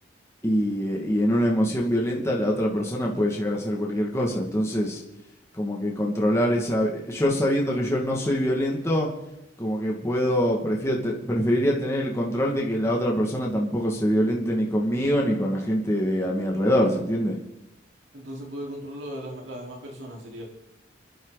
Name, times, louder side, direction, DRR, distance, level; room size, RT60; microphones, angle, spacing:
voice 1, 0.4-5.0 5.5-9.1 9.6-17.4, equal, 15° left, -2 dB, 2.3 m, -24 dB
voice 2, 18.1-20.4, equal, 75° right, -1 dB, 4.6 m, -37 dB
29.0 x 12.0 x 4.2 m, 0.87 s
head